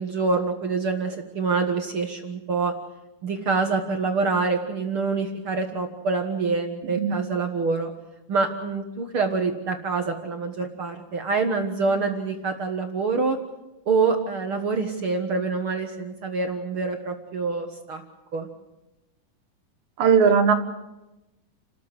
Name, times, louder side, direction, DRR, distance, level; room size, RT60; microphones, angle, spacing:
voice 1, 0.0-2.7 3.2-7.9 8.3-13.4 13.9-18.0 18.3-18.5, right 4 dB, 55° right, 4 dB, 1.5 m, -26 dB
voice 2, 20.0-20.5, right 6 dB, 70° right, 6 dB, 3.1 m, -18 dB
30.0 x 13.5 x 8.1 m, 0.99 s
omnidirectional pair, 4.2 m